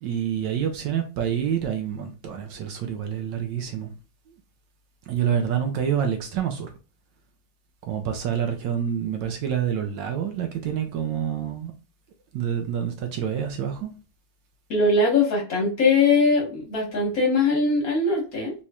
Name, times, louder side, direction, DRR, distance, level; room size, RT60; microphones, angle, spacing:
voice 1, 0.0-3.9 5.1-6.7 7.8-11.7 12.3-13.9, right 8 dB, 70° right, 1.1 m, -27 dB
voice 2, 14.7-18.5, left 3 dB, 45° left, 1.6 m, -21 dB
4.2 x 3.0 x 2.3 m
omnidirectional pair, 2.3 m